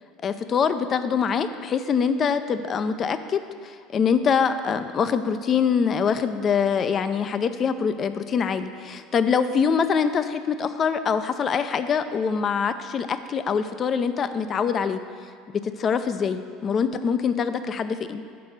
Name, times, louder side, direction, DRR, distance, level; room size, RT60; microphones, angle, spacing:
voice 1, 0.2-15.0 15.5-18.2, left 6 dB, 40° left, 11 dB, 0.5 m, -24 dB
6.7 x 5.1 x 6.5 m, 2.2 s
hypercardioid pair, 75°, 0 cm